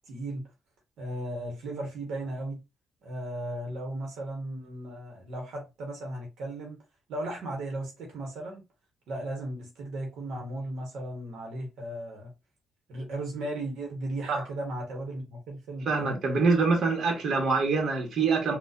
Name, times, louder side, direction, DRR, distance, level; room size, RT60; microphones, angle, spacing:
voice 1, 0.1-0.5 1.0-2.6 3.0-6.8 7.1-8.6 9.1-12.3 12.9-16.2, right 1 dB, 80° right, 1.2 m, -36 dB
voice 2, 15.9-18.6, right 4 dB, 60° right, 1.3 m, -25 dB
4.0 x 2.4 x 2.7 m
cardioid pair, 90°, 0 cm